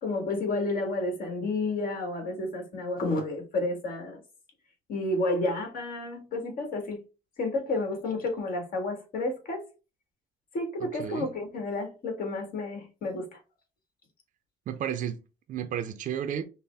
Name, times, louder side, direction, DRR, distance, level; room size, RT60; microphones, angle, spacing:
voice 1, 0.0-4.2 4.9-7.0 7.4-9.6 10.5-13.4, left 2 dB, 60° left, 1.7 m, -31 dB
voice 2, 10.8-11.3 14.7-15.2 15.5-16.4, right 9 dB, 50° right, 0.5 m, -32 dB
5.6 x 2.1 x 3.4 m
cardioid pair, 110°, 17 cm